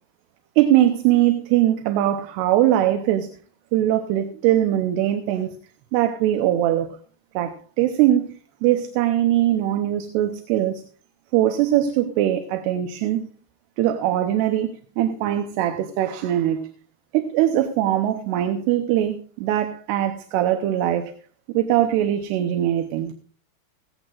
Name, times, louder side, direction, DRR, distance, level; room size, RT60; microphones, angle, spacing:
voice 1, 0.6-3.3 3.7-5.6 5.9-6.9 7.3-10.8 11.3-13.3 13.8-16.7 17.1-21.1 21.5-23.1, right 12 dB, 80° right, 2.9 m, -21 dB
16.5 x 16.0 x 2.4 m
omnidirectional pair, 4.8 m